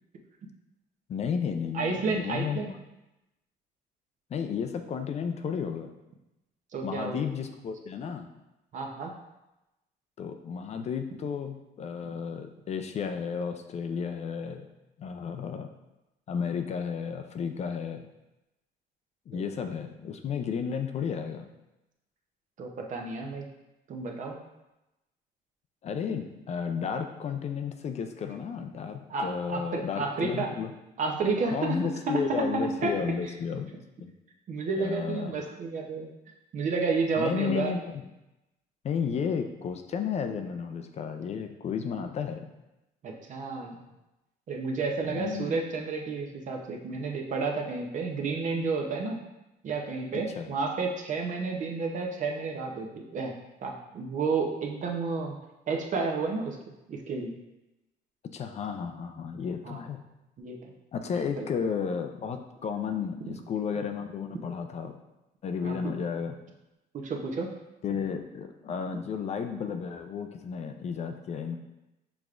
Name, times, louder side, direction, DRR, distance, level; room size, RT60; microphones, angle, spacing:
voice 1, 1.1-2.6 4.3-5.9 6.8-8.3 10.2-14.7 15.0-15.7 16.3-18.1 19.3-21.5 25.8-30.7 31.5-33.7 34.0-34.1 34.8-35.5 37.2-37.9 38.8-42.5 45.0-45.6 50.4-50.5 58.3-60.0 60.9-64.9 65.4-66.4 67.8-71.6, left 6 dB, 40° left, 6 dB, 0.4 m, -33 dB
voice 2, 1.7-2.7 6.7-7.2 8.7-9.1 19.3-19.4 22.6-23.5 23.9-24.4 29.1-30.5 31.0-31.8 32.1-32.9 34.5-36.1 36.5-37.7 43.0-43.7 44.5-49.2 49.6-53.3 53.6-55.4 55.7-57.3 59.6-59.8 60.4-60.7 61.4-61.5 63.3-63.4 65.6-65.7 66.9-67.5, right 4 dB, 45° right, 1 dB, 0.7 m, -31 dB
6.0 x 3.4 x 2.4 m, 0.96 s
cardioid pair, 110°, 17 cm